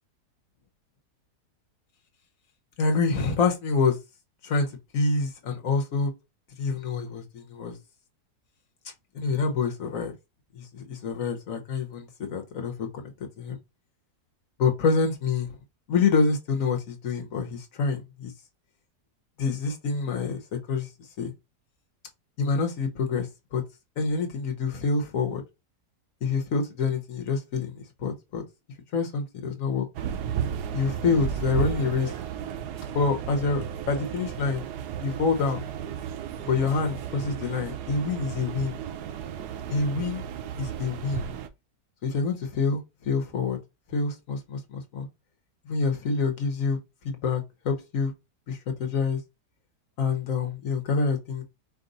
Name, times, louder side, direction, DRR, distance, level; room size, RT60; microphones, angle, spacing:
voice 1, 2.8-4.0 4.4-4.7 4.9-6.1 6.6-7.8 9.1-10.1 10.5-13.1 13.4-13.6 14.6-15.5 15.9-18.3 19.4-20.4 20.7-20.9 21.2-21.3 22.4-23.3 23.5-23.6 24.0-25.4 26.2-28.4 28.9-29.9 30.7-32.1 32.9-34.6 35.0-35.6 36.4-38.7 39.7-40.2 40.6-41.3 42.0-43.6 43.9-45.1 45.7-46.8 47.0-48.1 48.5-49.2 50.0-51.4, left 4 dB, 55° left, 1.2 m, -27 dB
sound 1, 29.9-41.5, right 8 dB, 75° right, 1.1 m, -34 dB
4.7 x 2.5 x 3.9 m
omnidirectional pair, 1.8 m